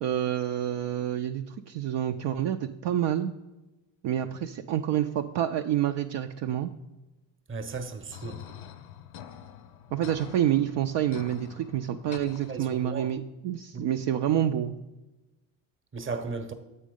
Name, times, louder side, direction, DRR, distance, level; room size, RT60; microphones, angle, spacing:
voice 1, 0.0-3.4 4.0-6.7 9.9-14.7, right 11 dB, 60° right, 0.5 m, -28 dB
voice 2, 7.5-8.6 12.5-13.1 13.7-13.9 15.9-16.5, right 4 dB, 25° right, 0.9 m, -36 dB
sound 1, 8.1-13.1, left 9 dB, 70° left, 0.6 m, -46 dB
7.5 x 4.5 x 5.1 m
supercardioid pair, 70°, 49 cm